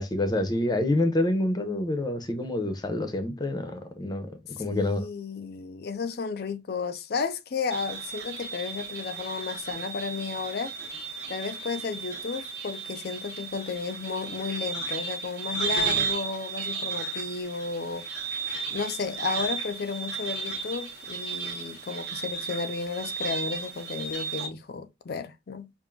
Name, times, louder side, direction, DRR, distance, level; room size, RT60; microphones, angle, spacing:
voice 1, 0.0-5.1, left 1 dB, 25° left, 0.7 m, -27 dB
voice 2, 4.6-10.9 11.3-18.1 18.7-25.7, left 5 dB, 60° left, 0.5 m, -33 dB
sound 1, 7.7-24.5, right 5 dB, 70° right, 1.0 m, -34 dB
5.2 x 2.6 x 2.3 m
head